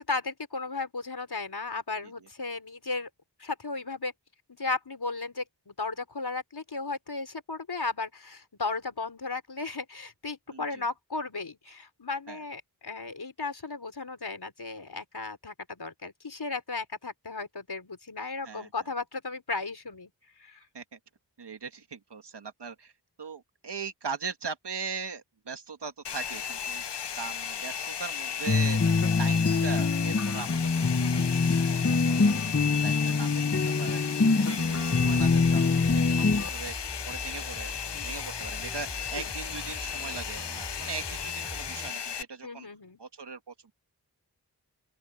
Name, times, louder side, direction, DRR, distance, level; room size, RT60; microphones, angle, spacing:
voice 1, 0.1-3.1 3.4-4.1 4.6-20.1 20.4-20.6 32.4-32.9 39.2-39.3 42.4-43.0, left 3 dB, 70° left, 4.3 m, -35 dB
voice 2, 10.5-10.9 12.3-12.4 18.4-18.7 20.7-21.0 21.4-22.9 23.2-26.8 27.1-28.8 29.2-37.8 38.0-42.7 43.0-43.7, right 5 dB, 85° right, 1.6 m, -40 dB
Domestic sounds home sounds, 26.0-42.2, left 8 dB, 90° left, 0.8 m, -35 dB
sound 1, 28.5-36.5, left 4 dB, 35° left, 1.1 m, -24 dB
sound 2, 34.9-41.9, equal, 5° left, 6.0 m, -43 dB
open air
wide cardioid pair, 45°, 40 cm